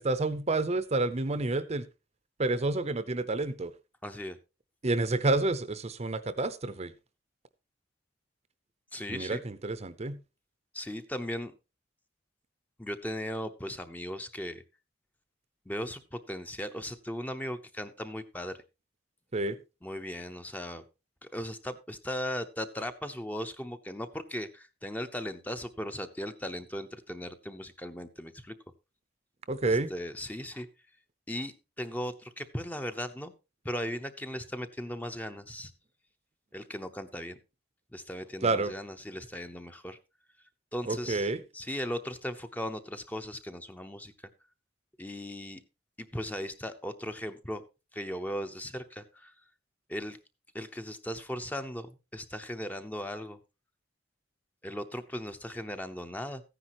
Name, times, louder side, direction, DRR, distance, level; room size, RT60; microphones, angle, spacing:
voice 1, 0.0-1.9 2.4-3.7 4.8-6.9 9.1-10.2 19.3-19.6 29.5-29.9 38.4-38.7 40.9-41.4, right 2 dB, 35° right, 13 dB, 0.7 m, -29 dB
voice 2, 4.0-4.4 8.9-9.4 10.7-11.5 12.8-14.6 15.7-18.6 19.8-20.8 21.2-28.5 29.6-30.7 31.3-33.3 33.6-35.7 36.5-37.4 37.9-40.0 40.7-41.3 41.5-44.1 45.0-45.6 46.1-47.6 47.9-49.3 49.9-50.2 50.5-53.4 54.6-56.4, equal, 10° left, 8 dB, 0.7 m, -37 dB
14.5 x 10.0 x 3.0 m, 0.28 s
head